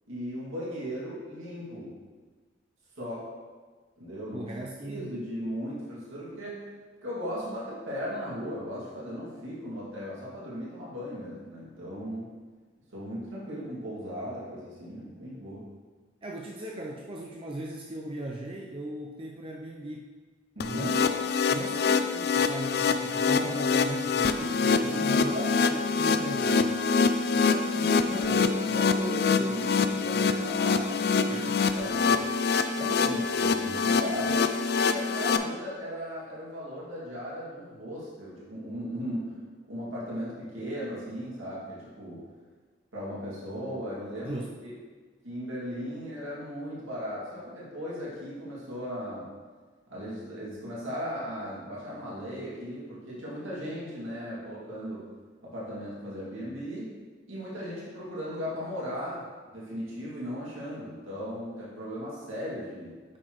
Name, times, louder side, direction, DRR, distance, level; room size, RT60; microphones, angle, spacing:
voice 1, 0.1-2.0 3.0-3.3 4.0-4.5 4.8-6.7 7.0-12.3 12.9-15.7 20.6-21.0 24.9-25.6 27.3-31.3 31.7-32.3 32.8-34.5 34.9-39.4 39.7-42.2 42.9-44.7 45.2-49.3 49.9-55.1 55.4-56.9 57.3-63.0, equal, 90° right, -7 dB, 2.3 m, -37 dB
voice 2, 4.3-5.1 16.2-20.1 20.6-26.8 31.3-31.6 44.2-44.5, right 1 dB, 25° right, -1 dB, 0.5 m, -38 dB
sound 1, 20.6-35.4, left 5 dB, 50° left, 0.3 m, -25 dB
8.8 x 6.2 x 3.1 m, 1.4 s
head